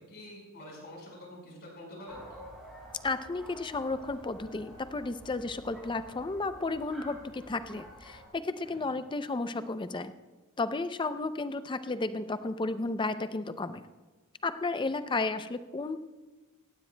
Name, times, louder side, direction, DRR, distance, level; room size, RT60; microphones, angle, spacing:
voice 1, 0.0-2.4 8.6-8.9, left 1 dB, 50° left, -1 dB, 4.7 m, -47 dB
sound 1, 2.1-8.3, equal, ahead, 4.8 m, -49 dB
voice 2, 3.0-10.1 10.6-13.8 14.4-16.0, left 3 dB, 20° left, 11 dB, 0.5 m, -33 dB
17.0 x 15.5 x 2.2 m, 1.2 s
head